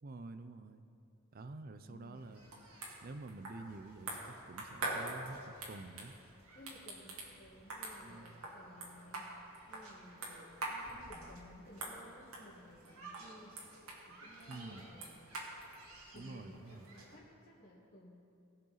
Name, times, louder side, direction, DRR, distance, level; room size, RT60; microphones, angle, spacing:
voice 1, 0.0-0.8 1.3-2.5 3.0-5.4 5.7-6.2 8.0-8.5 14.5-14.9 16.1-16.9, right 2 dB, 45° right, 11 dB, 0.5 m, -48 dB
voice 2, 1.8-2.3 6.5-9.3 9.7-13.5 14.1-15.3 16.0-18.2, equal, 40° left, -9 dB, 1.7 m, -57 dB
sound 1, 2.1-17.2, right 2 dB, 90° right, 2.2 m, -46 dB
20.0 x 6.6 x 4.0 m, 2.6 s
head